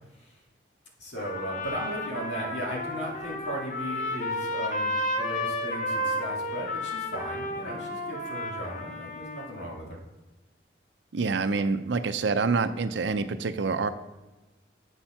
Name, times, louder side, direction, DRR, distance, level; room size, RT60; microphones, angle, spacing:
voice 1, 1.0-10.0, equal, 80° left, -2 dB, 2.1 m, -37 dB
Trumpet, 1.2-9.6, left 1 dB, 45° left, 0.9 m, -32 dB
voice 2, 11.1-13.9, right 4 dB, 80° right, 11 dB, 0.5 m, -26 dB
8.0 x 4.3 x 5.7 m, 1.1 s
head